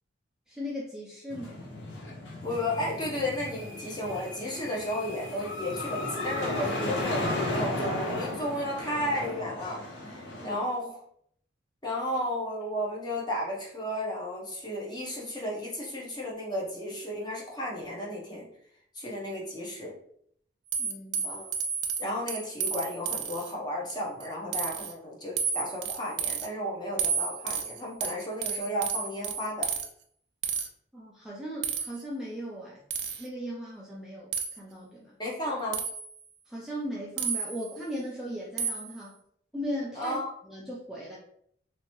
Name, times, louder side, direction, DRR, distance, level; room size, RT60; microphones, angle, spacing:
voice 1, 0.5-1.6 10.4-10.6 20.8-21.3 30.9-32.8 33.2-34.3 34.6-35.2 36.5-39.1 39.5-40.2 40.4-41.2, equal, 5° right, -6 dB, 0.5 m, -37 dB
sound 1, 1.3-10.5, left 1 dB, 85° left, 0.9 m, -35 dB
voice 2, 2.4-9.8 10.1-10.2 10.4-11.0 11.8-18.5 19.0-19.9 21.2-21.5 22.0-29.7 35.2-35.8 40.0-40.3, left 1 dB, 20° left, -3 dB, 0.9 m, -33 dB
sound 2, 20.7-23.5 23.9-24.3 24.5-24.9 25.4-26.5 27.0-29.9 30.4-30.7 31.6-32.0 32.9-33.3 34.3-34.6 35.7-36.2 37.2-37.8 38.6-39.0, right 6 dB, 60° right, 0.4 m, -32 dB
3.3 x 2.9 x 3.0 m, 0.66 s
head